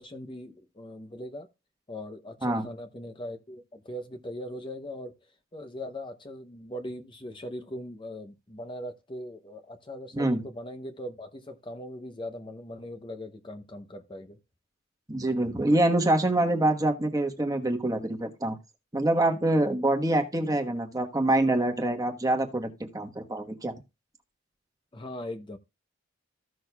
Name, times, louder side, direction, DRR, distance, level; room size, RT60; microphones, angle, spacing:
voice 1, 0.0-1.5 1.9-5.1 5.5-14.4 24.9-25.6, left 1 dB, 25° left, 0.7 m, -40 dB
voice 2, 15.1-18.6 18.9-23.7, right 1 dB, 15° right, 1.2 m, -25 dB
15.0 x 6.3 x 2.3 m
head